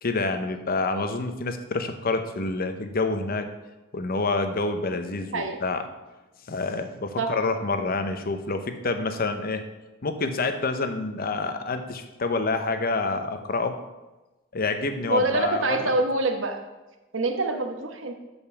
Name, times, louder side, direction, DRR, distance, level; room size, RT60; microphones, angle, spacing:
voice 1, 0.0-3.5 3.9-5.8 6.5-9.6 10.0-13.8 14.5-15.8, left 3 dB, 50° left, 7 dB, 0.8 m, -27 dB
voice 2, 15.1-16.6 17.1-18.1, right 2 dB, 70° right, 5 dB, 1.1 m, -25 dB
6.9 x 5.4 x 6.9 m, 1.1 s
head